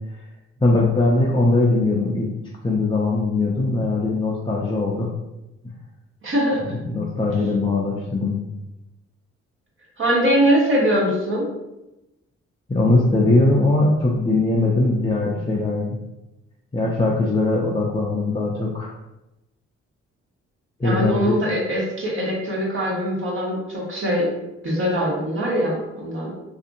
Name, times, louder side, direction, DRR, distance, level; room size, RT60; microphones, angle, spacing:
voice 1, 0.6-2.3 2.6-5.1 6.6-8.4 12.7-16.0 16.7-18.9 20.8-21.4, left 2 dB, 15° left, -4 dB, 0.5 m, -20 dB
voice 2, 6.2-6.7 10.0-11.5 20.8-24.3 24.6-26.3, equal, 45° right, -3 dB, 1.0 m, -22 dB
2.6 x 2.4 x 2.6 m, 0.95 s
supercardioid pair, 60°, 29 cm